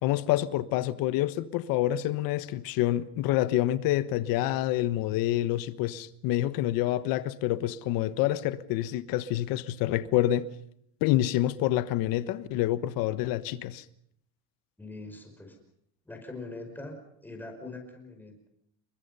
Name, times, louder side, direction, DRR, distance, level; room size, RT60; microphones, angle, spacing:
voice 1, 0.0-10.4 11.0-13.8, left 14 dB, 70° left, 1.3 m, -27 dB
voice 2, 14.8-15.6 16.1-18.5, left 2 dB, 5° left, 5.3 m, -42 dB
28.5 x 22.5 x 5.6 m
cardioid pair, 160°, 36 cm